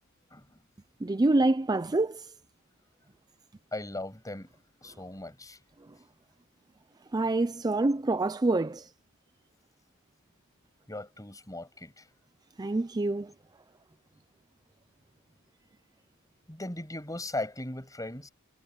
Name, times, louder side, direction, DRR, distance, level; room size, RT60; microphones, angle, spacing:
voice 1, 1.0-2.3 7.1-8.9 12.6-13.3, right 2 dB, 20° right, 0.4 m, -26 dB
voice 2, 3.7-4.5 4.8-5.6 10.9-12.1 16.5-18.3, left 2 dB, 15° left, 7.1 m, -38 dB
head